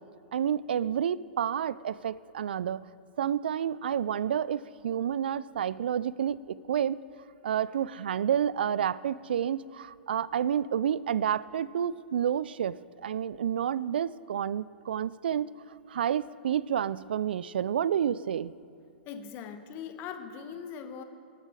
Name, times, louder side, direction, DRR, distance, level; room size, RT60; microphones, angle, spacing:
voice 1, 0.3-2.9 3.2-7.0 7.4-12.7 13.0-15.5 15.9-18.5, right 9 dB, 70° right, 19 dB, 0.3 m, -29 dB
voice 2, 19.0-21.0, left 7 dB, 40° left, 7 dB, 1.2 m, -40 dB
18.5 x 9.0 x 5.0 m, 2.3 s
hypercardioid pair, 110°, 6 cm